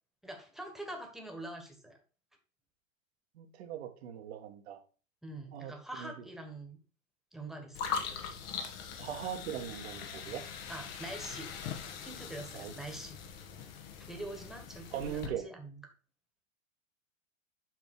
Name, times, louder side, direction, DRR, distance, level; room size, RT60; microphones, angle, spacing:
voice 1, 0.2-2.0 5.2-6.8 7.3-7.8 10.7-11.5 12.0-13.2 14.0-15.8, right 1 dB, ahead, 1.8 m, -44 dB
voice 2, 3.4-4.8 5.5-5.7 6.0-6.1 9.0-10.4 12.5-12.7 14.9-15.5, right 10 dB, 50° right, 1.7 m, -40 dB
sound 1, 7.7-15.3, left 6 dB, 45° left, 1.6 m, -41 dB
8.2 x 5.2 x 4.6 m
figure-of-eight pair, 100°, 40 cm